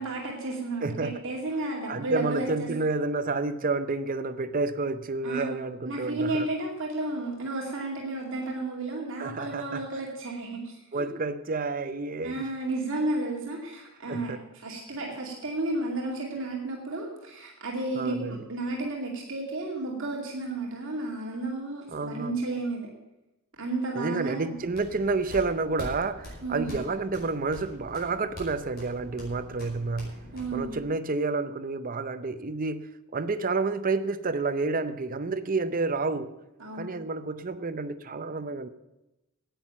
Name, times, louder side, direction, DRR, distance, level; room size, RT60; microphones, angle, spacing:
voice 1, 0.0-2.7 5.2-5.5 5.8-11.1 12.2-22.9 23.6-24.5 26.4-26.7 30.3-30.7 36.6-36.9, right 2 dB, 60° right, 2.4 m, -32 dB
voice 2, 0.8-1.1 1.9-6.5 9.2-9.8 10.9-12.5 14.1-14.4 17.9-18.4 21.9-22.3 24.0-30.2 30.5-36.3 36.7-38.7, right 3 dB, 40° right, 0.6 m, -30 dB
sound 1, 24.5-30.8, left 1 dB, 45° left, 5.4 m, -44 dB
10.0 x 9.2 x 8.7 m
head